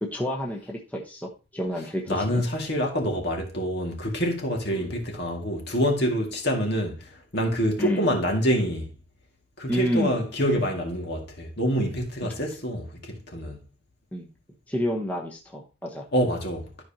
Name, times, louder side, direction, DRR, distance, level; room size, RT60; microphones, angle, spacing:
voice 1, 0.0-2.4 4.7-4.9 7.8-8.1 9.7-10.2 12.2-12.3 14.1-14.3 14.7-16.1, equal, 5° left, 1.1 m, -30 dB
voice 2, 2.1-8.9 9.6-13.6 16.1-16.8, equal, 50° left, 2.1 m, -26 dB
12.5 x 5.2 x 2.9 m
head